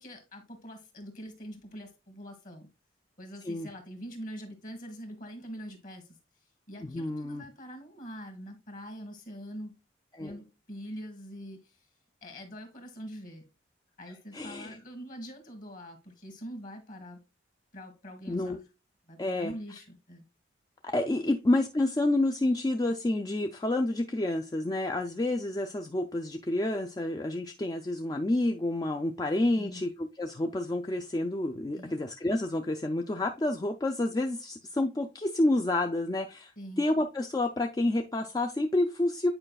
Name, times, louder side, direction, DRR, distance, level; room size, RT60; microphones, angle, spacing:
voice 1, 0.0-2.7 3.2-6.2 6.7-9.7 10.2-11.8 12.2-13.4 14.0-17.2 17.7-18.6 19.1-20.2 29.6-29.9 31.7-32.0 36.6-36.8, equal, 45° left, 1.6 m, -44 dB
voice 2, 6.8-7.4 10.1-10.4 14.3-14.8 18.3-18.6 19.2-19.5 20.8-36.5 36.8-39.3, left 1 dB, 20° left, 0.3 m, -29 dB
8.8 x 4.9 x 2.3 m
head